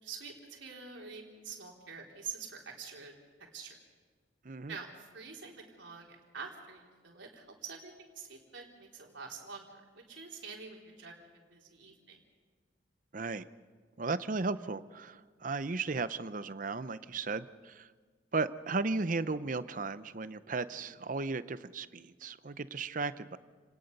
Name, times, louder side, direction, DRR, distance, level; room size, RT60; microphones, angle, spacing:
voice 1, 0.0-3.1 3.5-3.7 4.7-9.7 9.9-12.2, right 5 dB, 80° right, 0 dB, 3.7 m, -46 dB
voice 2, 4.4-4.8 13.1-13.5 14.0-17.9 18.3-23.4, right 3 dB, 45° right, 14 dB, 0.7 m, -35 dB
29.5 x 19.0 x 5.4 m, 1.5 s
head